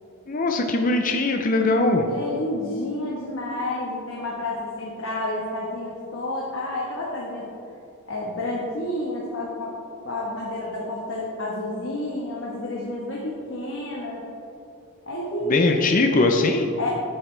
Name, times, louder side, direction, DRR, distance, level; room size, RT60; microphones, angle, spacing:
voice 1, 0.3-2.1 15.5-16.7, left 2 dB, 35° left, 4 dB, 0.6 m, -21 dB
voice 2, 2.1-7.5 8.1-9.8 10.0-14.3 15.1-16.3 16.8-16.9, left 1 dB, 60° left, -4 dB, 1.4 m, -30 dB
11.5 x 8.8 x 3.4 m, 2.7 s
head